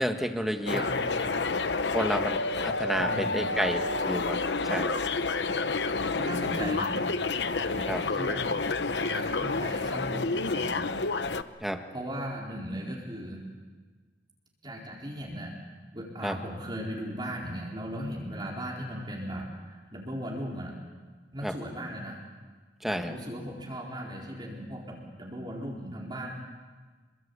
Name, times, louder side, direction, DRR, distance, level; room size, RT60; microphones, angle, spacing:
voice 1, 0.0-0.8 1.9-5.0 7.9-8.0 11.6-11.8 16.2-16.4 21.4-21.5 22.8-23.1, equal, ahead, 5 dB, 1.6 m, -30 dB
sound 1, 0.7-11.4, left 3 dB, 70° left, 1.0 m, -29 dB
voice 2, 0.7-1.4 3.0-3.5 6.0-7.0 7.5-8.5 8.9-10.9 11.9-13.5 14.6-15.6 15.9-20.8 21.3-22.2 23.0-26.3, equal, 25° right, -2 dB, 4.1 m, -37 dB
28.0 x 23.0 x 8.4 m, 1.4 s
head